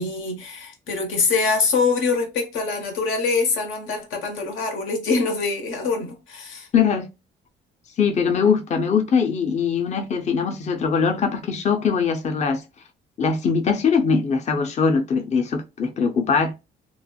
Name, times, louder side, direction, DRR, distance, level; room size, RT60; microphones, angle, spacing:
voice 1, 0.0-6.7, left 4 dB, 85° left, 1.0 m, -24 dB
voice 2, 6.7-7.1 8.0-12.6 13.2-16.5, left 6 dB, 35° left, 0.5 m, -21 dB
3.1 x 2.1 x 2.3 m
cardioid pair, 90°, 20 cm